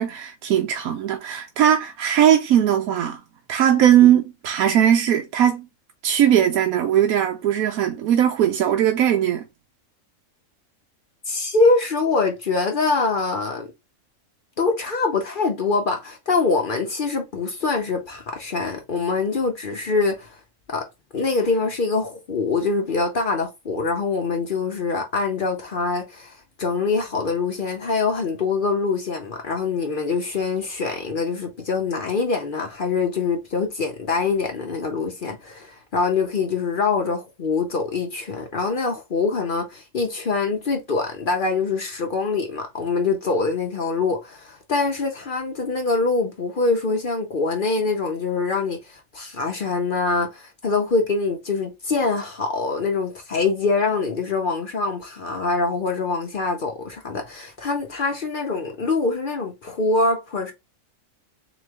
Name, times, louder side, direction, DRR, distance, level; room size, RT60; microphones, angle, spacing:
voice 1, 0.0-3.2 3.5-5.7 6.0-9.4, right 10 dB, 85° right, 1.1 m, -19 dB
voice 2, 11.3-13.7 14.6-20.4 20.7-20.9 21.1-60.5, left 4 dB, 45° left, 0.7 m, -24 dB
3.9 x 3.1 x 3.4 m
omnidirectional pair, 1.5 m